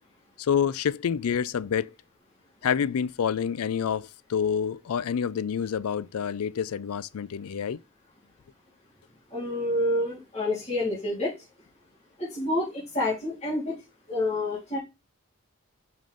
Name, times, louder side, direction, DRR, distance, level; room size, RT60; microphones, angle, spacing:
voice 1, 0.4-1.9 2.6-7.8, left 7 dB, 85° left, 0.4 m, -28 dB
voice 2, 9.3-11.3 12.2-13.7 14.1-14.8, left 1 dB, 30° left, 2.7 m, -28 dB
5.4 x 5.1 x 3.8 m
head